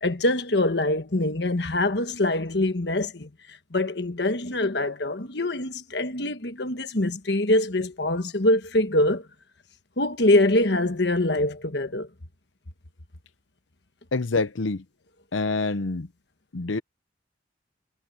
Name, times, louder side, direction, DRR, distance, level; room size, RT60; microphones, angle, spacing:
voice 1, 0.0-3.3 3.7-9.2 10.0-12.1, left 1 dB, 60° left, 1.4 m, -24 dB
voice 2, 14.1-14.8 15.3-16.1 16.5-16.8, left 3 dB, 85° left, 0.8 m, -26 dB
head